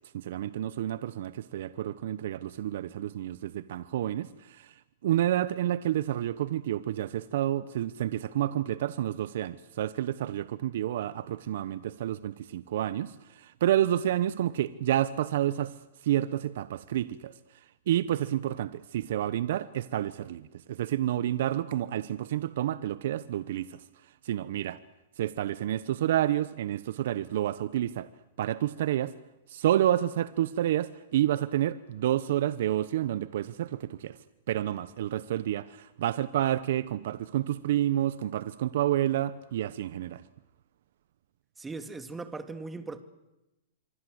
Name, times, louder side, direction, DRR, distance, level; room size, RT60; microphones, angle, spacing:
voice 1, 0.1-24.8 25.2-28.1 28.4-29.1 29.5-34.2 34.5-40.2, right 12 dB, 65° right, 0.9 m, -29 dB
voice 2, 41.6-43.0, right 3 dB, 10° right, 2.3 m, -39 dB
26.0 x 23.5 x 8.0 m
hypercardioid pair, 125°, 0 cm